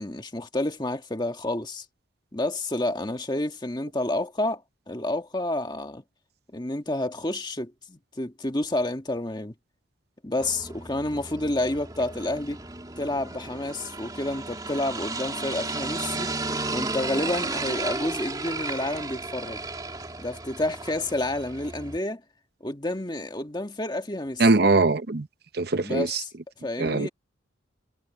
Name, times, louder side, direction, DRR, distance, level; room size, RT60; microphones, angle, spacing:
voice 1, 0.0-1.8 2.3-6.0 6.5-9.5 10.2-12.6 13.0-16.3 16.7-19.6 20.2-22.2 22.6-24.5 25.8-26.3 26.6-27.1, left 1 dB, 20° left, 1.6 m, -29 dB
sound 1, 10.4-22.0, right 3 dB, 20° right, 3.0 m, -34 dB
voice 2, 24.4-25.3 25.5-26.2 26.8-27.1, right 3 dB, 55° right, 0.8 m, -21 dB
head